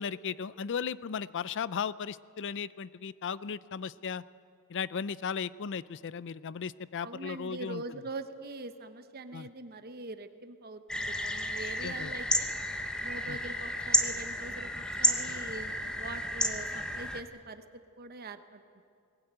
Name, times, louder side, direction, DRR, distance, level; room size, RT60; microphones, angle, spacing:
voice 1, 0.0-4.2 4.7-8.0 9.3-9.5 11.8-12.1 13.3-13.4, left 6 dB, 55° left, 19 dB, 0.4 m, -36 dB
voice 2, 7.0-12.5 13.0-17.6 18.0-18.8, right 2 dB, 45° right, 9 dB, 0.9 m, -43 dB
sound 1, 10.9-17.2, left 1 dB, 5° left, 0.8 m, -32 dB
19.5 x 17.5 x 8.8 m, 2.3 s
head